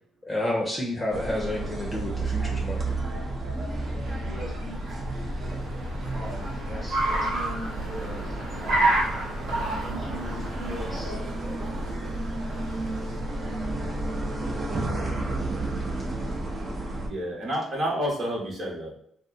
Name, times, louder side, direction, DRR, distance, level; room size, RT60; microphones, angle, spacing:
voice 1, 0.2-2.9, left 1 dB, 20° left, -1 dB, 0.7 m, -30 dB
sound 1, 1.1-17.1, right 2 dB, 35° right, 0.7 m, -31 dB
Car, 3.4-13.6, right 2 dB, 80° right, 0.9 m, -31 dB
voice 2, 4.1-4.8 6.1-9.1 9.8-11.2, equal, 10° right, -3 dB, 1.2 m, -40 dB
voice 3, 17.1-18.9, equal, 55° right, -2 dB, 1.1 m, -29 dB
2.6 x 2.0 x 3.9 m, 0.66 s
cardioid pair, 90°, 0 cm